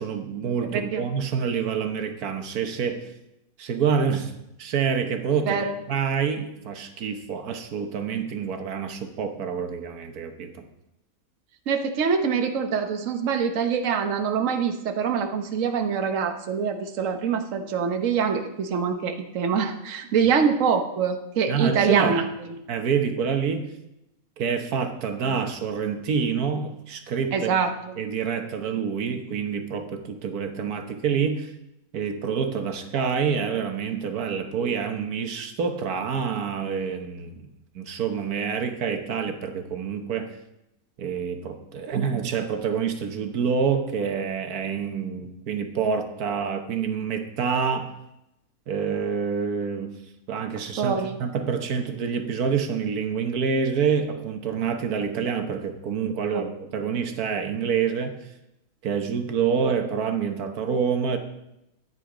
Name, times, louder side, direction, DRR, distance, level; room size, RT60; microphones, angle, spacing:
voice 1, 0.0-3.0 3.6-4.3 4.6-5.6 5.9-10.6 21.5-22.1 22.7-23.7 24.4-27.5 28.0-31.5 31.9-37.5 37.7-40.3 41.0-47.9 48.7-49.9 50.3-58.2 58.8-61.2, right 6 dB, 90° right, 6 dB, 1.5 m, -27 dB
voice 2, 0.7-1.0 5.5-5.7 11.7-22.2 27.3-27.7 50.8-51.1 56.3-56.4, right 6 dB, 60° right, 5 dB, 1.3 m, -24 dB
11.0 x 9.4 x 5.0 m, 0.86 s
omnidirectional pair, 1.5 m